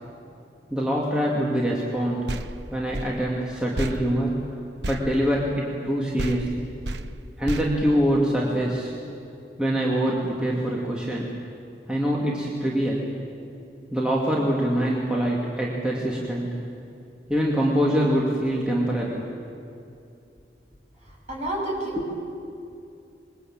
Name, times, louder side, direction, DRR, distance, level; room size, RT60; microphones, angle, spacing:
voice 1, 0.7-2.3 2.7-4.4 4.9-6.7 7.4-8.9 9.6-11.3 11.9-13.1 13.9-16.6 17.3-19.2, equal, 5° right, -4 dB, 2.5 m, -24 dB
sound 1, 2.3-5.9 6.2-8.7, right 1 dB, 85° right, 1.0 m, -34 dB
voice 2, 21.0-22.1, right 1 dB, 40° right, -2 dB, 7.3 m, -30 dB
25.0 x 22.5 x 8.9 m, 2.6 s
head